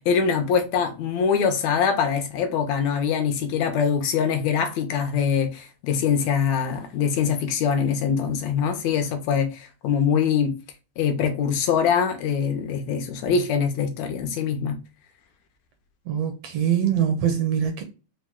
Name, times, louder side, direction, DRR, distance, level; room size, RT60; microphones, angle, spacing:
voice 1, 0.0-10.5 11.0-14.8, left 7 dB, 75° left, 1.9 m, -23 dB
voice 2, 16.1-17.8, right 9 dB, 70° right, 1.6 m, -23 dB
5.2 x 2.2 x 3.5 m
omnidirectional pair, 3.3 m